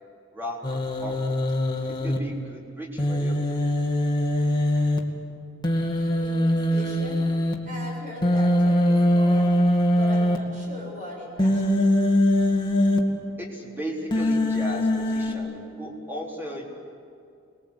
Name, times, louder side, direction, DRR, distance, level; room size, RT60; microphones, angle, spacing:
voice 1, 0.3-1.2 2.0-3.4 13.4-16.6, equal, 10° right, -2 dB, 4.2 m, -35 dB
Human voice, 0.6-2.2 3.0-5.0 5.6-7.5 8.2-10.4 11.4-13.0 14.1-15.3, left 1 dB, 20° left, 2.2 m, -22 dB
voice 2, 6.1-7.3 7.7-9.5 9.9-12.1, equal, 40° right, -1 dB, 7.1 m, -39 dB
26.0 x 21.0 x 8.4 m, 2.4 s
head